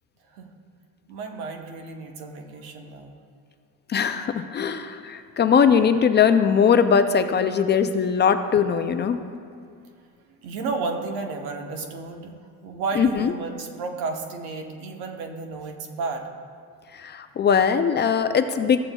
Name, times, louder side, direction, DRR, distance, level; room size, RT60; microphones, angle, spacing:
voice 1, 1.1-3.1 10.3-16.3, right 4 dB, 90° right, 4 dB, 1.1 m, -32 dB
voice 2, 3.9-9.2 13.0-13.3 16.9-18.8, left 7 dB, 30° left, 9 dB, 0.4 m, -20 dB
14.5 x 8.8 x 2.3 m, 2.3 s
cardioid pair, 125°, 36 cm